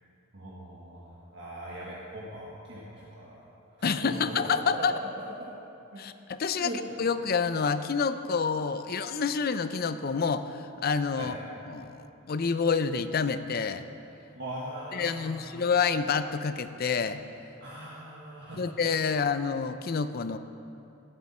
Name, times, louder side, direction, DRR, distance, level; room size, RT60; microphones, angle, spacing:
voice 1, 0.3-3.5 4.0-4.2 4.8-4.9 5.9-6.2 6.6-6.8 11.2-11.3 14.4-15.6 17.6-18.7, right 1 dB, 55° right, -6 dB, 1.6 m, -41 dB
voice 2, 3.8-4.9 6.0-6.7 7.0-11.3 11.7-13.9 14.9-17.2 18.6-20.4, left 5 dB, 45° left, 11 dB, 0.5 m, -28 dB
18.0 x 8.0 x 4.3 m, 2.7 s
head